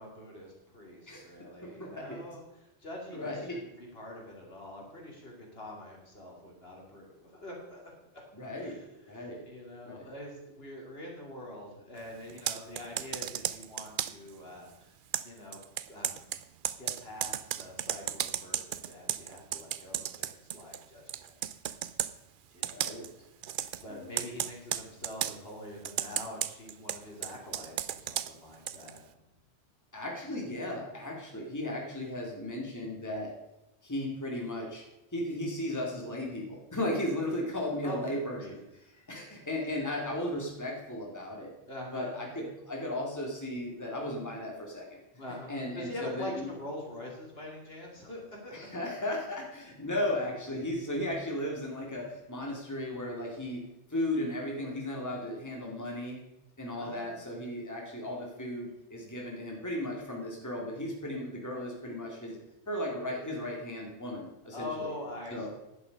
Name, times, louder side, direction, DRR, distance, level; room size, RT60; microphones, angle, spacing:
voice 1, 0.0-2.4 2.8-8.2 8.6-14.9 15.2-15.6 15.9-16.4 16.8-21.5 22.5-23.0 23.8-29.2 37.8-38.0 38.3-38.6 41.6-42.1 45.2-48.5 56.8-57.2 64.5-65.5, left 1 dB, 60° left, -1 dB, 3.0 m, -44 dB
voice 2, 1.6-2.2 3.1-3.7 8.3-8.8 9.1-9.4 9.8-10.1 22.6-23.1 23.9-24.1 29.9-33.3 33.8-34.8 35.1-38.6 39.1-41.5 41.9-44.9 45.5-46.5 48.5-56.2 56.6-62.4 62.7-64.9 65.3-65.5, left 1 dB, 15° left, -2 dB, 2.3 m, -35 dB
Computer keyboard, 12.3-14.3 15.1-20.8 21.1-22.1 22.6-23.1 23.4-23.8 24.2-25.4 25.8-29.0, right 10 dB, 60° right, 0.6 m, -34 dB
11.0 x 9.7 x 5.2 m, 0.91 s
omnidirectional pair, 1.2 m